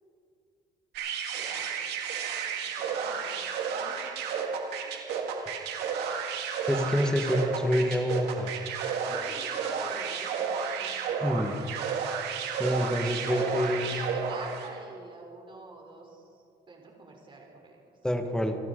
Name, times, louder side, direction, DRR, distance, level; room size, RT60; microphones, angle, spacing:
sound 1, 0.9-14.8, right 6 dB, 85° right, 1.9 m, -32 dB
voice 1, 1.3-2.3 2.6-4.4 4.8-5.0 9.0-11.0 13.3-18.0, right 3 dB, 30° right, 1 dB, 3.7 m, -47 dB
voice 2, 6.7-8.5 11.2-11.6 12.6-13.9 18.0-18.6, equal, 5° left, 5 dB, 1.7 m, -27 dB
27.0 x 12.0 x 3.9 m, 2.5 s
cardioid pair, 110°, 17 cm